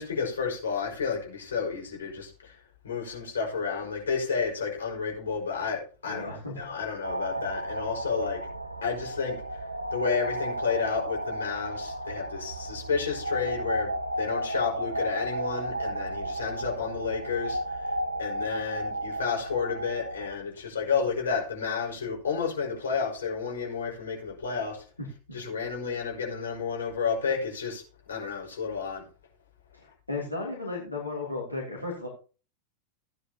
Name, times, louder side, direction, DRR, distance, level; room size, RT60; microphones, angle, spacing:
voice 1, 0.0-8.4 8.8-9.6 9.9-17.9 18.2-24.9 25.3-27.8 28.1-29.1, left 5 dB, 65° left, 5.2 m, -31 dB
voice 2, 6.0-6.5 25.0-25.4 29.7-32.1, left 2 dB, 85° left, 2.9 m, -35 dB
sound 1, 7.0-20.4, right 1 dB, 85° right, 0.9 m, -33 dB
15.5 x 9.9 x 2.9 m
figure-of-eight pair, 90°, 0 cm